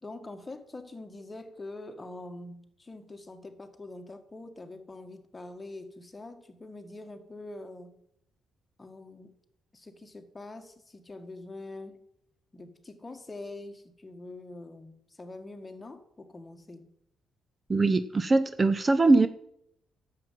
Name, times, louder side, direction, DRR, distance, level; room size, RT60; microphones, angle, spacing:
voice 1, 0.0-8.0 8.8-9.3 9.7-12.0 12.5-16.9, left 2 dB, 20° left, 1.7 m, -44 dB
voice 2, 17.7-19.3, right 3 dB, 25° right, 0.7 m, -22 dB
10.5 x 7.7 x 7.5 m
cardioid pair, 90°, 0 cm